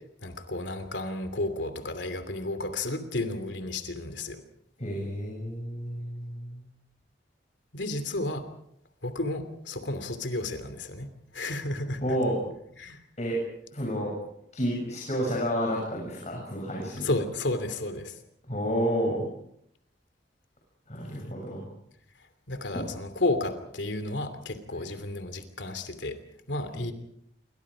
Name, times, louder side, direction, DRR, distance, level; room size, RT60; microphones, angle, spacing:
voice 1, 0.2-4.4 7.7-8.5 9.0-11.1 11.3-12.2 12.8-13.0 17.0-18.1 22.5-26.2 26.5-26.9, left 2 dB, 85° left, 9 dB, 2.8 m, -32 dB
voice 2, 4.8-6.6 12.0-12.4 13.2-13.4 13.7-14.2 14.5-17.1 18.5-19.3 20.9-21.7 22.7-22.9 24.7-24.8 26.7-26.8, equal, 40° left, -1 dB, 7.5 m, -30 dB
28.0 x 25.0 x 5.0 m, 0.72 s
head